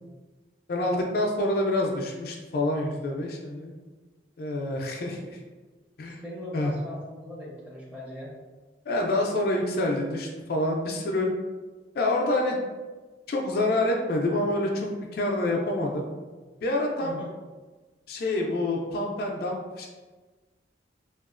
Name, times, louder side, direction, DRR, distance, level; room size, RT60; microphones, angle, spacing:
voice 1, 0.7-3.7 4.4-5.4 6.0-6.2 6.5-6.7 8.9-11.3 11.9-12.6 13.3-16.1 16.6-17.1 18.1-19.9, left 1 dB, 55° left, 0 dB, 0.3 m, -27 dB
voice 2, 6.2-8.3 17.0-17.3, left 1 dB, 10° right, -5 dB, 0.6 m, -40 dB
2.8 x 2.3 x 2.4 m, 1.3 s
head